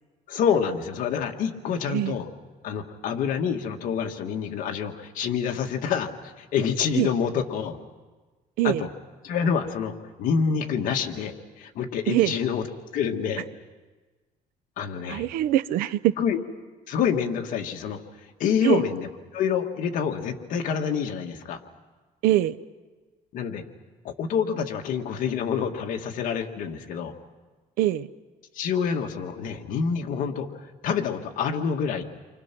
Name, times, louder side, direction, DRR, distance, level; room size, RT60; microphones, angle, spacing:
voice 1, 0.3-2.3 2.6-7.8 8.6-8.9 9.2-9.9 10.2-12.6 12.9-13.4 14.8-15.3 16.2-16.4 16.9-18.0 18.4-21.6 23.3-23.6 24.0-27.1 28.6-32.0, left 7 dB, 65° left, 4 dB, 1.9 m, -27 dB
voice 2, 12.1-12.4 15.1-16.1 18.6-18.8 22.2-22.6 27.8-28.1, right 13 dB, 90° right, 16 dB, 0.7 m, -23 dB
30.0 x 25.0 x 6.1 m, 1.3 s
cardioid pair, 135°, 15 cm